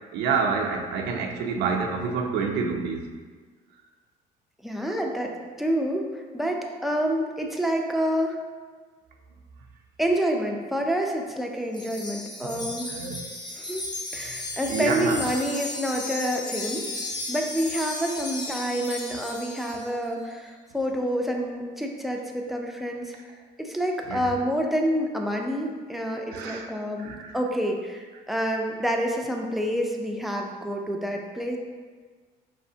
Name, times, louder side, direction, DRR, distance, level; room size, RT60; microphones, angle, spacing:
voice 1, 0.1-3.1 12.4-13.2 14.7-15.3 24.1-24.3 26.3-26.7 27.0-27.4, right 5 dB, 90° right, 2 dB, 0.5 m, -28 dB
voice 2, 4.6-5.3 5.6-8.4 10.0-12.9 13.6-16.9 17.3-23.1 23.6-31.6, equal, ahead, 1 dB, 0.4 m, -28 dB
Wind chime, 11.7-19.9, left 2 dB, 25° left, 0.8 m, -35 dB
4.7 x 3.2 x 2.7 m, 1.5 s
cardioid pair, 110°, 17 cm